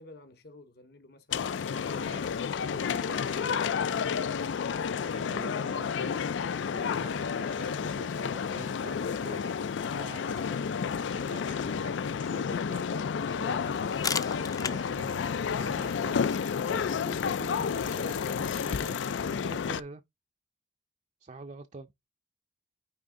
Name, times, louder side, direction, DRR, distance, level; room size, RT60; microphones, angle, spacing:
voice 1, 0.0-2.2, left 2 dB, 55° left, 0.9 m, -53 dB
sound 1, 1.3-19.8, left 6 dB, 80° left, 0.4 m, -31 dB
voice 2, 1.7-2.2 2.5-3.8 5.0-6.2 6.7-15.2 15.6-16.2 16.7-20.0 21.2-21.9, right 3 dB, 40° right, 0.5 m, -47 dB
sound 2, 13.7-19.2, left 5 dB, 20° left, 0.5 m, -40 dB
9.3 x 3.5 x 3.7 m
head